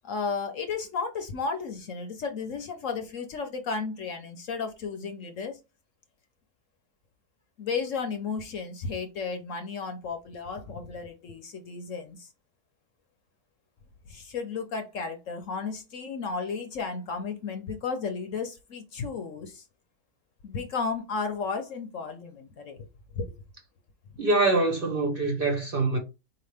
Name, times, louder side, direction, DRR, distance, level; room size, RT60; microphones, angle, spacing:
voice 1, 0.0-5.6 7.6-12.3 14.1-19.6 20.4-22.9 23.1-23.4, left 5 dB, 60° left, 1.0 m, -33 dB
voice 2, 24.2-26.0, right 2 dB, 40° right, 1.0 m, -24 dB
4.6 x 2.9 x 3.3 m
omnidirectional pair, 1.7 m